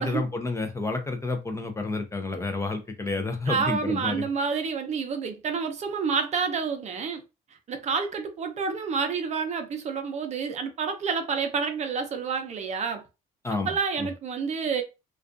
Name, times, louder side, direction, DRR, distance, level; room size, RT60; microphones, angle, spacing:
voice 1, 0.0-4.3 13.4-14.1, left 3 dB, 15° left, 0.4 m, -30 dB
voice 2, 3.5-7.2 7.7-13.0 13.7-14.8, right 5 dB, 40° right, 0.6 m, -29 dB
2.4 x 2.3 x 2.4 m
cardioid pair, 110°, 17 cm